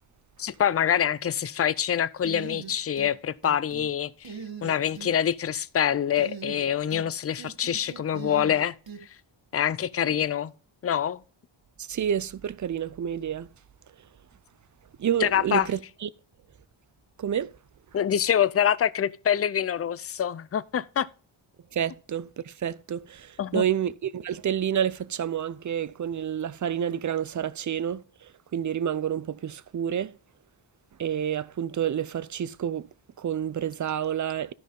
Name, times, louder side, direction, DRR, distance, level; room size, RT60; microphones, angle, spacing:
voice 1, 0.4-4.3 4.6-8.8 9.5-10.5 10.8-11.2 15.2-15.7 17.9-21.1 23.4-23.6, left 9 dB, 30° left, 0.4 m, -25 dB
sound 1, 2.2-3.1 3.4-3.9 4.2-5.1 6.2-7.1 7.4-9.0, right 6 dB, 60° right, 1.7 m, -40 dB
voice 2, 11.8-13.5 15.0-16.1 17.2-17.5 21.7-30.1 31.0-32.9 33.2-34.5, right 9 dB, 40° right, 0.4 m, -29 dB
12.5 x 5.5 x 3.7 m
wide cardioid pair, 90°, 50 cm